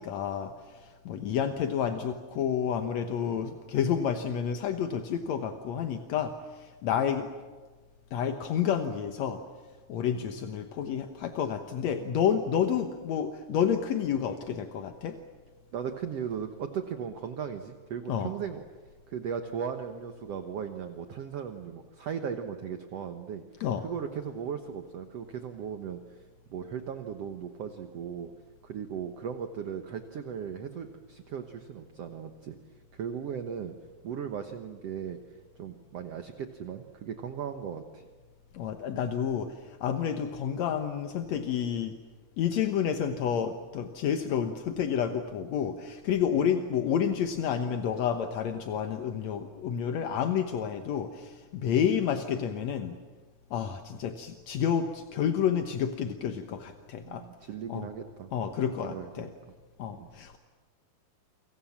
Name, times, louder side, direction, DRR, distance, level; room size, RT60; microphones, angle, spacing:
voice 1, 0.0-7.3 8.1-9.4 9.9-15.2 18.1-18.3 23.6-23.8 38.5-42.0 42.4-53.0 53.5-57.2 57.7-57.9 58.3-59.3 59.8-60.4, left 8 dB, 65° left, 6 dB, 1.8 m, -30 dB
voice 2, 15.7-18.6 19.1-23.4 23.8-26.2 26.5-28.3 28.6-32.6 32.9-33.7 34.0-38.1 57.0-58.3 58.8-59.3 60.0-60.1, right 7 dB, 65° right, 6 dB, 1.6 m, -37 dB
29.0 x 25.0 x 7.4 m, 1.4 s
omnidirectional pair, 4.5 m